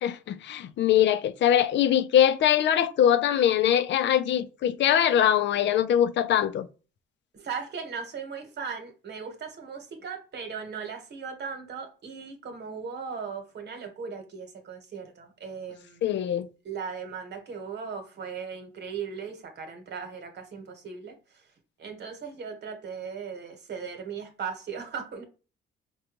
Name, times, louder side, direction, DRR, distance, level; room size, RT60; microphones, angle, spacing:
voice 1, 0.0-6.7 16.0-16.5, left 10 dB, 65° left, 0.5 m, -22 dB
voice 2, 7.3-16.1 16.6-21.4 21.8-25.2, right 6 dB, 60° right, 1.2 m, -38 dB
5.1 x 2.3 x 2.9 m
cardioid pair, 90°, 20 cm